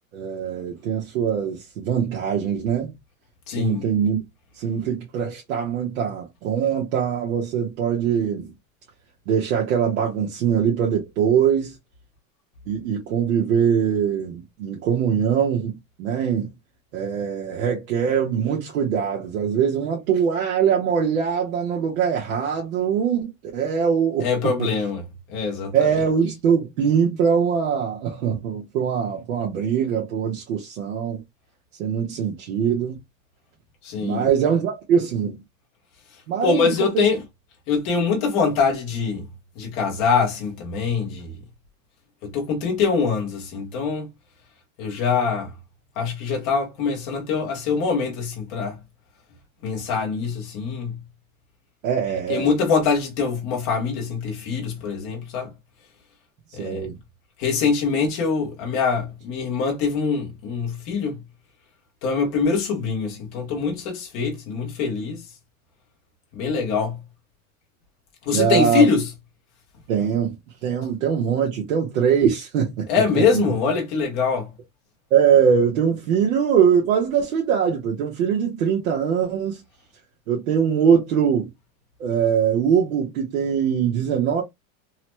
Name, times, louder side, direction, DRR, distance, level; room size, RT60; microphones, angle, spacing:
voice 1, 0.1-2.9 3.6-4.2 4.6-8.5 9.3-11.7 12.7-16.5 16.9-24.3 24.6-24.7 25.7-31.2 31.8-33.0 34.0-35.4 36.3-37.1 51.8-52.5 56.6-57.0 68.3-68.9 69.9-70.4 70.6-72.9 73.1-73.5 75.1-79.6 80.3-81.5 82.0-84.4, right 7 dB, 70° right, 1.1 m, -22 dB
voice 2, 3.5-3.8 24.2-25.0 25.3-25.7 33.8-34.2 36.4-37.2 37.7-39.2 39.6-41.3 42.2-44.1 44.8-45.5 46.0-48.8 49.6-51.0 52.3-55.5 56.5-56.8 57.4-61.2 62.0-65.2 66.3-67.0 68.3-69.1 72.9-74.5, left 5 dB, 15° left, 0.4 m, -23 dB
3.1 x 2.0 x 2.9 m
supercardioid pair, 175°, 42 cm